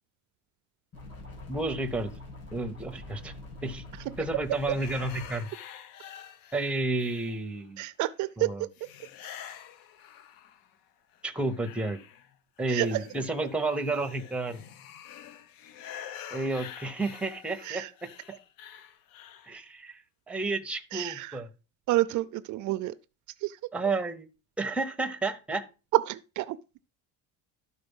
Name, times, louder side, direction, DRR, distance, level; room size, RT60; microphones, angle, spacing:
sound 1, 0.9-5.3, left 2 dB, 45° left, 5.4 m, -44 dB
voice 1, 1.5-2.1 2.5-3.3 3.6-3.8 4.2-5.5 6.5-7.8 8.4-8.5 11.2-12.0 12.6-14.6 16.3-17.8 19.4-21.5 23.7-24.3 24.6-25.6, right 2 dB, 5° right, 0.7 m, -31 dB
voice 2, 3.9-4.4 4.7-4.8 7.8-9.1 12.7-13.1 17.6-17.9 20.9-21.4 21.9-23.0 23.3-23.6 25.9-26.6, right 17 dB, 55° right, 0.4 m, -30 dB
sound 2, 4.5-7.7 8.7-10.8 11.1-19.6, left 9 dB, 70° left, 0.9 m, -47 dB
12.5 x 4.2 x 5.4 m
cardioid pair, 165°, 36 cm